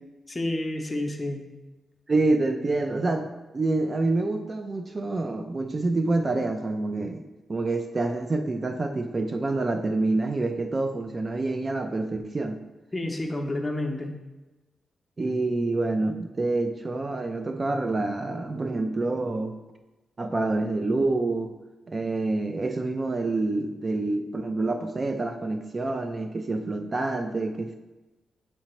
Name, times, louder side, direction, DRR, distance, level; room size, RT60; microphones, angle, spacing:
voice 1, 0.3-1.4 12.9-14.1, left 1 dB, 20° left, 3 dB, 0.7 m, -29 dB
voice 2, 2.1-12.6 15.2-19.6 20.2-21.5 21.9-27.7, right 2 dB, 30° right, 6 dB, 0.3 m, -27 dB
7.7 x 2.9 x 4.3 m, 1.1 s
wide cardioid pair, 120°, 0 cm